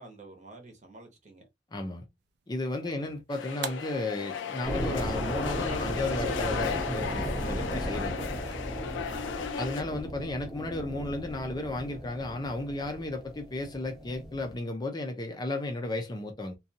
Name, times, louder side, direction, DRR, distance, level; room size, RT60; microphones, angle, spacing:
voice 1, 0.0-1.5 2.8-3.2 9.0-9.5, right 2 dB, 40° right, 0.9 m, -50 dB
voice 2, 1.7-2.1 2.5-8.3 9.6-16.6, left 2 dB, 25° left, 0.5 m, -34 dB
sound 1, 2.2-8.5, right 7 dB, 60° right, 0.4 m, -48 dB
sound 2, 3.3-9.8, left 6 dB, 85° left, 0.4 m, -35 dB
sound 3, 4.6-14.5, equal, ahead, 0.9 m, -36 dB
2.5 x 2.3 x 2.7 m
head